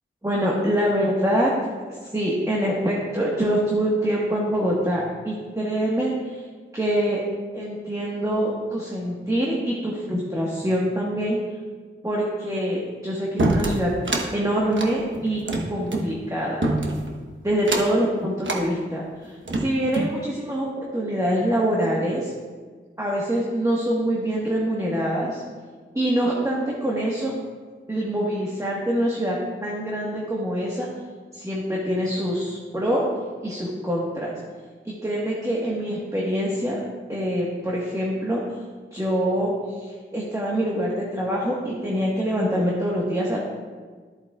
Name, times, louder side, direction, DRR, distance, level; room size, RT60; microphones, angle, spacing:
voice 1, 0.2-6.5 6.7-7.2 7.5-11.4 12.0-13.9 14.3-15.4 15.7-16.6 17.4-22.3 23.0-25.4 25.9-27.3 27.9-30.9 31.3-33.0 33.4-34.4 34.8-36.8 37.1-38.6 38.9-43.4, equal, 15° right, -4 dB, 1.4 m, -25 dB
sound 1, 13.4-14.3 14.7-16.1 16.6-17.1 17.6-18.0 18.4-18.6 19.2-20.1, right 2 dB, 65° right, 1.1 m, -25 dB
13.5 x 8.4 x 2.4 m, 1.5 s
wide cardioid pair, 75°, 21 cm